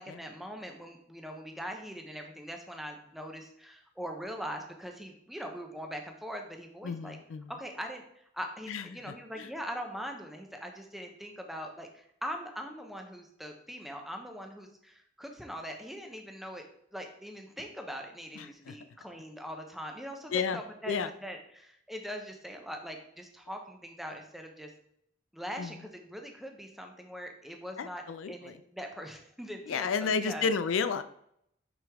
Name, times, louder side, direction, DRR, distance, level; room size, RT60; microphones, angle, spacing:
voice 1, 0.0-7.2 7.5-16.6 16.9-24.7 25.3-28.0 28.3-30.5, equal, ahead, 3 dB, 0.7 m, -42 dB
voice 2, 6.8-7.5 8.7-9.5 18.4-18.7 20.3-20.6 20.9-21.1 25.6-25.7 27.8-28.6 29.7-31.0, left 5 dB, 90° left, 12 dB, 0.4 m, -32 dB
6.0 x 5.2 x 3.5 m, 0.72 s
head